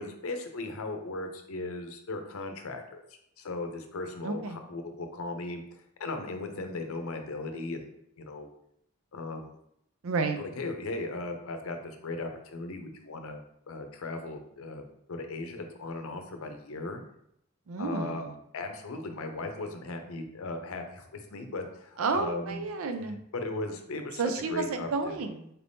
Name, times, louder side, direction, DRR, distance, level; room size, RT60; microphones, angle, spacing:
voice 1, 0.0-3.0 3.4-8.5 9.1-9.6 10.4-13.4 13.7-14.8 15.1-17.0 17.8-18.2 18.5-22.6 23.0-24.2 24.5-25.2, left 2 dB, 85° left, 5 dB, 0.6 m, -37 dB
voice 2, 4.2-4.6 10.0-10.4 17.7-18.3 22.0-23.2 24.2-25.5, right 4 dB, 90° right, 7 dB, 0.5 m, -31 dB
4.3 x 3.4 x 2.6 m, 0.75 s
head